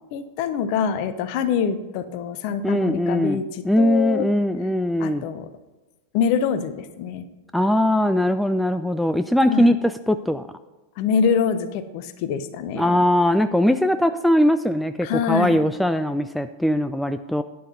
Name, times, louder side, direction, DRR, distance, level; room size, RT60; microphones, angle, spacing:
voice 1, 0.1-4.3 5.0-5.5 6.1-7.2 9.5-9.7 11.0-13.0 15.0-15.6, left 6 dB, 45° left, 11 dB, 1.0 m, -25 dB
voice 2, 2.6-3.4 3.6-5.2 7.5-10.5 12.8-17.4, left 1 dB, ahead, 10 dB, 0.4 m, -20 dB
11.5 x 9.6 x 4.0 m, 1.1 s
figure-of-eight pair, 90°, 0 cm